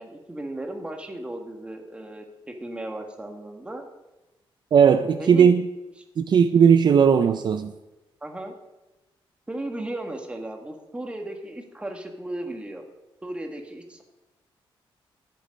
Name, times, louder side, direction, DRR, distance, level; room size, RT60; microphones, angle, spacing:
voice 1, 0.0-3.8 5.2-5.6 8.2-8.5 9.5-12.8 13.2-14.0, right 1 dB, 10° right, 1.7 m, -35 dB
voice 2, 4.7-5.6 6.2-7.7, right 7 dB, 55° right, 0.5 m, -17 dB
13.5 x 8.4 x 5.4 m
wide cardioid pair, 135°, 9 cm